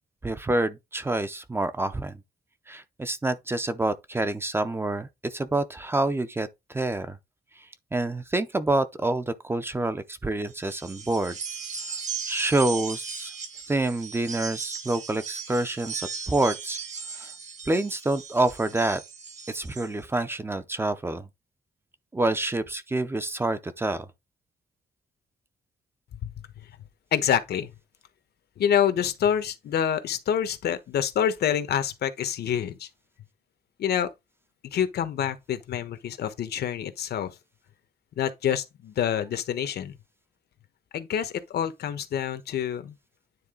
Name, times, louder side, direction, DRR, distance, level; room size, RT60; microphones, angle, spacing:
voice 1, 0.2-2.2 2.7-7.2 7.6-11.4 12.3-13.3 13.7-16.8 17.1-17.3 17.7-19.0 19.5-21.3 22.1-24.1, right 2 dB, 15° right, 0.5 m, -27 dB
sound 1, 10.5-19.9, right 6 dB, 45° right, 1.4 m, -37 dB
voice 2, 27.1-27.7 28.6-32.9 33.8-34.1 34.7-37.3 38.2-39.9 40.9-42.9, left 9 dB, 80° left, 1.1 m, -27 dB
9.5 x 3.8 x 3.8 m
wide cardioid pair, 170°, 16 cm